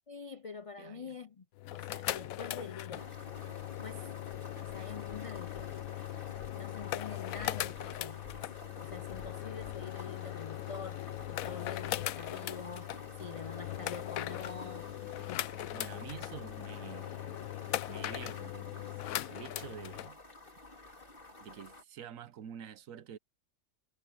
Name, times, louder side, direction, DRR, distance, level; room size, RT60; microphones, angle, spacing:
voice 1, 0.1-3.1 3.8-4.1 4.6-5.7 6.5-8.2 8.8-14.9, left 5 dB, 65° left, 0.3 m, -46 dB
voice 2, 0.8-1.2 15.7-17.4 17.9-19.0 19.3-20.2 21.4-23.2, right 9 dB, 75° right, 1.2 m, -48 dB
sound 1, 1.6-20.1, left 14 dB, 90° left, 1.0 m, -39 dB
sound 2, 2.9-21.8, left 2 dB, 40° left, 3.2 m, -50 dB
omnidirectional pair, 1.4 m